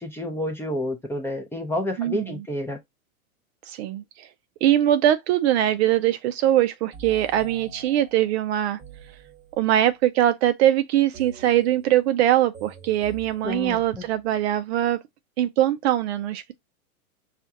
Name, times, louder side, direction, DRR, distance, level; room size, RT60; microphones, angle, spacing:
voice 1, 0.0-2.8 13.4-14.1, left 1 dB, 5° left, 0.5 m, -29 dB
voice 2, 2.0-2.4 3.7-4.3 4.6-8.8 9.6-15.0 15.4-16.6, right 12 dB, 50° right, 0.5 m, -22 dB
sound 1, 6.9-9.9 11.1-14.4, right 4 dB, 15° right, 1.1 m, -46 dB
5.6 x 2.4 x 2.7 m
hypercardioid pair, 130°, 43 cm